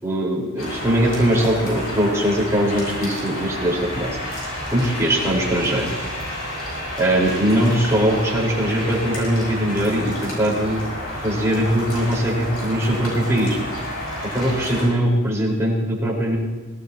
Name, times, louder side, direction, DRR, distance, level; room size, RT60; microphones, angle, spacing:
voice 1, 0.0-4.2 4.7-5.9 7.0-10.8 11.2-13.6 14.3-16.4, right 1 dB, 15° right, -5 dB, 5.1 m, -21 dB
sound 1, 0.6-14.9, left 1 dB, 80° left, 6.9 m, -30 dB
25.5 x 18.0 x 3.1 m, 1.2 s
head